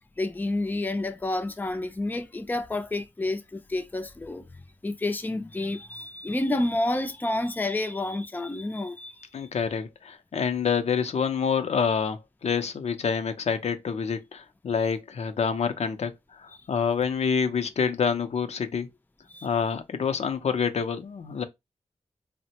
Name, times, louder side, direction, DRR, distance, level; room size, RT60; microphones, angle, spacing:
voice 1, 0.2-4.5 4.8-9.5 19.3-19.5, left 2 dB, 15° left, 0.5 m, -29 dB
voice 2, 9.3-18.9 19.4-21.4, left 6 dB, 65° left, 0.5 m, -27 dB
3.5 x 2.1 x 2.8 m
cardioid pair, 75°, 12 cm